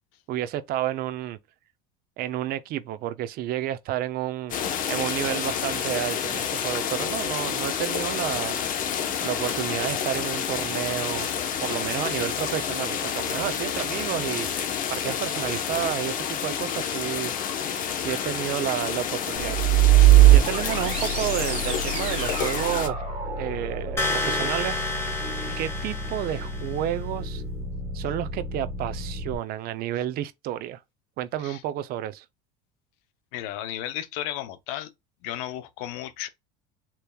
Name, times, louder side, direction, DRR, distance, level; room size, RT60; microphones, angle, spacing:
voice 1, 0.3-1.4 2.2-4.5 4.9-8.6 9.2-11.3 11.6-14.5 14.9-17.3 17.9-19.6 20.3-23.0 23.3-24.8 25.6-27.4 27.9-30.8 31.2-32.2, right 12 dB, 55° right, 0.6 m, -30 dB
sound 1, 4.5-22.9, left 8 dB, 50° left, 1.0 m, -29 dB
sound 2, 19.4-29.4, right 11 dB, 35° right, 1.8 m, -23 dB
sound 3, 24.0-26.9, left 2 dB, 15° left, 1.5 m, -30 dB
voice 2, 33.3-34.9 35.2-36.3, left 12 dB, 80° left, 0.7 m, -34 dB
6.7 x 3.1 x 2.3 m
supercardioid pair, 110°, 18 cm